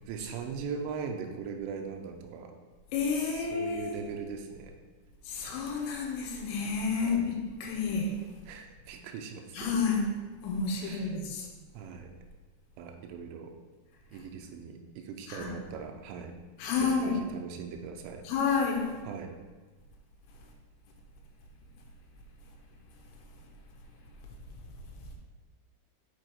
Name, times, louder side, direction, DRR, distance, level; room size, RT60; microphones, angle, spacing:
voice 1, 0.1-2.5 3.2-4.7 7.0-7.3 8.5-9.7 10.8-11.2 11.7-12.1 12.8-13.6 14.1-16.3 16.8-18.2 19.0-19.3, right 6 dB, 80° right, 3 dB, 3.1 m, -40 dB
voice 2, 2.9-4.0 5.3-8.2 9.5-10.1 10.4-11.5 15.3-15.5 16.6-17.2 18.3-19.0, left 5 dB, 85° left, 0 dB, 3.5 m, -30 dB
7.7 x 5.0 x 4.6 m, 1.3 s
omnidirectional pair, 6.0 m